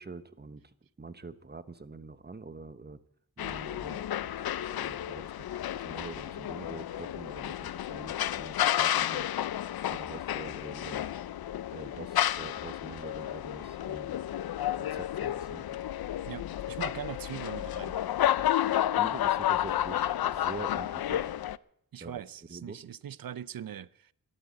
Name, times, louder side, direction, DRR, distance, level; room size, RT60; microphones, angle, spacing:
voice 1, 0.0-3.0 3.4-4.3 4.6-5.3 5.7-9.3 9.9-11.0 11.7-14.2 14.8-15.6 19.0-21.3 22.0-22.2 22.5-22.8, right 3 dB, 25° right, 1.0 m, -45 dB
sound 1, 3.4-21.6, left 12 dB, 70° left, 0.5 m, -31 dB
voice 2, 16.3-18.0 21.9-24.1, right 9 dB, 65° right, 0.6 m, -41 dB
13.5 x 11.5 x 7.8 m
cardioid pair, 55°, 38 cm